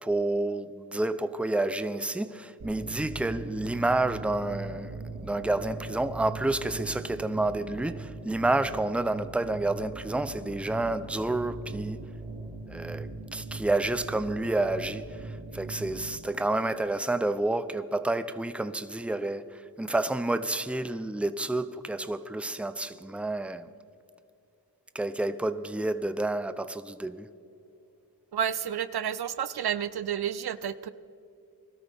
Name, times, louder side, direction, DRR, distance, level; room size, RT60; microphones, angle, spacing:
voice 1, 0.0-12.0 12.7-23.7 24.9-27.3, right 2 dB, 5° right, 0.6 m, -29 dB
sound 1, 2.6-16.2, right 3 dB, 85° right, 3.5 m, -40 dB
voice 2, 28.3-30.9, right 9 dB, 70° right, 0.6 m, -30 dB
20.0 x 13.0 x 3.6 m
cardioid pair, 45°, 40 cm